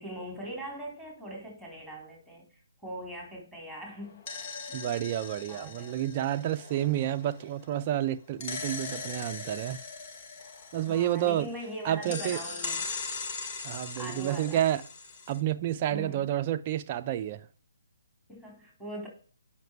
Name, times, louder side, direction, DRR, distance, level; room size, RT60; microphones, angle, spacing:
voice 1, 0.0-4.2 4.7-5.0 5.5-6.0 10.7-12.8 14.0-14.6 15.9-16.3 18.3-19.1, equal, 5° left, 4.0 m, -41 dB
sound 1, 4.0-7.7 8.4-11.6 12.0-15.4, left 4 dB, 35° left, 1.1 m, -40 dB
voice 2, 4.7-9.8 10.7-11.5 11.8-12.4 13.6-14.8 15.3-17.5, right 12 dB, 30° right, 0.6 m, -30 dB
9.2 x 6.0 x 4.7 m
hypercardioid pair, 150°, 0 cm